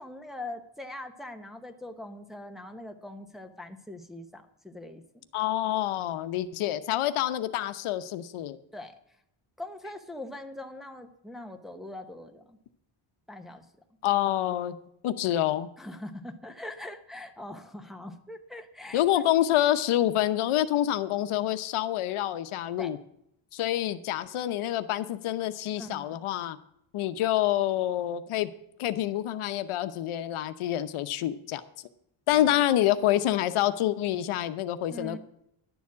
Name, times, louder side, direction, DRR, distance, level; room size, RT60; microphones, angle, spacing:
voice 1, 0.0-5.2 8.7-9.0 9.6-12.6 13.3-13.6 15.8-19.3 22.8-22.9 25.8-26.2 32.3-32.4 34.9-35.2, left 1 dB, ahead, 4 dB, 0.9 m, -42 dB
voice 2, 5.3-8.6 14.0-14.8 15.0-15.7 18.9-23.0 23.5-26.6 26.9-28.5 28.8-31.6 32.3-35.2, left 12 dB, 75° left, 11 dB, 0.9 m, -27 dB
11.5 x 7.1 x 8.4 m, 0.76 s
cardioid pair, 160°, 50 cm